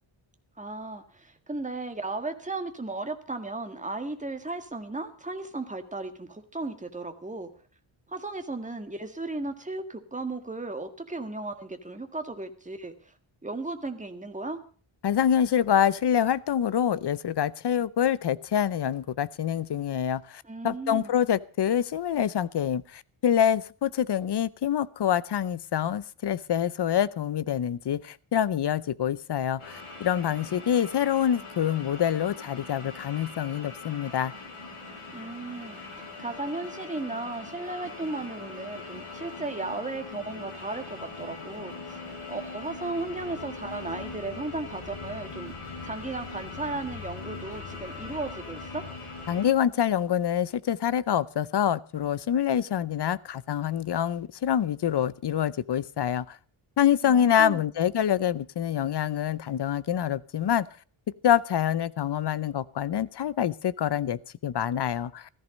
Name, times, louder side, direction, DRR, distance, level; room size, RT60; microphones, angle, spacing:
voice 1, 0.6-7.5 8.1-13.1 13.4-14.6 20.4-21.1 35.1-48.9 57.0-57.7, right 2 dB, 15° right, 1.8 m, -35 dB
voice 2, 15.0-34.3 49.3-56.4 56.8-60.7 61.2-65.4, left 9 dB, 55° left, 0.7 m, -26 dB
sound 1, 29.6-49.5, left 3 dB, 80° left, 6.5 m, -41 dB
15.0 x 14.5 x 5.3 m
wide cardioid pair, 135°, 49 cm